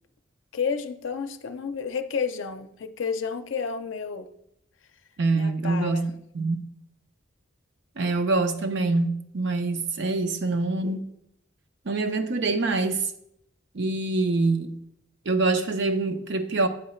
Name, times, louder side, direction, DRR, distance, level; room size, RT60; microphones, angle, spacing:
voice 1, 0.5-4.3 5.3-6.1, left 5 dB, 70° left, 0.5 m, -31 dB
voice 2, 5.2-6.6 8.0-11.0 11.9-13.1 13.7-14.8 15.3-16.7, right 3 dB, 60° right, 0.6 m, -25 dB
7.7 x 3.8 x 4.3 m
head